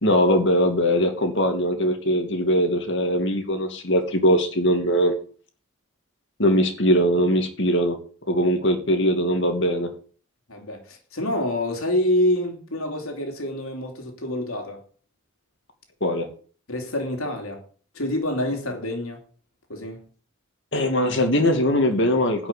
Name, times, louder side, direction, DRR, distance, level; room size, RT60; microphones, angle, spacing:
voice 1, 0.0-5.1 6.4-8.0 8.3-9.9 16.0-16.3 20.7-22.5, equal, 55° left, 2.5 m, -21 dB
voice 2, 10.5-14.8 16.7-17.6 17.9-19.2 19.7-20.0, left 1 dB, 80° left, 3.0 m, -27 dB
11.0 x 6.1 x 8.4 m
head